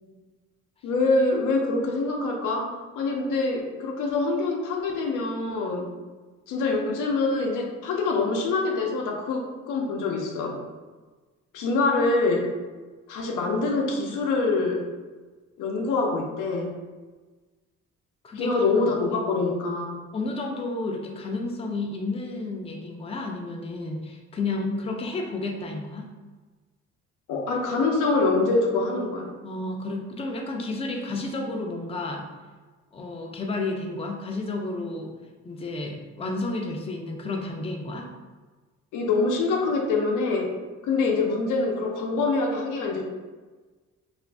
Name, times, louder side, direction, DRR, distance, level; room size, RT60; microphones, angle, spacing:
voice 1, 0.8-5.9 6.5-10.6 11.5-12.5 13.1-14.9 15.6-16.7 18.3-20.0 27.3-29.3 38.9-40.5 40.8-43.0, left 3 dB, 85° left, 1 dB, 0.6 m, -25 dB
voice 2, 18.2-18.6 20.1-26.1 29.4-32.3 32.9-35.1 35.4-38.1, left 2 dB, 20° left, 1 dB, 0.4 m, -31 dB
2.5 x 2.5 x 3.3 m, 1.3 s
cardioid pair, 90°, 30 cm